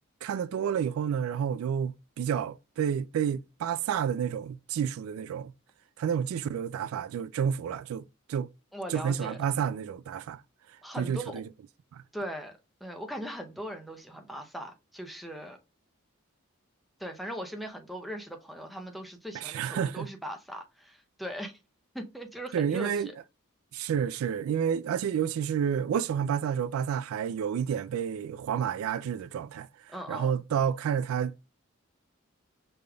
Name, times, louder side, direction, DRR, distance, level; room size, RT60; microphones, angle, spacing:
voice 1, 0.2-5.5 6.0-8.5 8.9-10.4 11.0-11.5 11.9-12.0 19.3-20.1 22.5-23.1 23.7-31.4, right 8 dB, 90° right, 0.3 m, -30 dB
voice 2, 8.7-9.4 10.8-11.4 12.1-12.5 12.8-15.6 17.0-21.5 21.9-23.1 29.9-30.4, equal, ahead, 0.6 m, -39 dB
5.2 x 3.4 x 2.2 m
head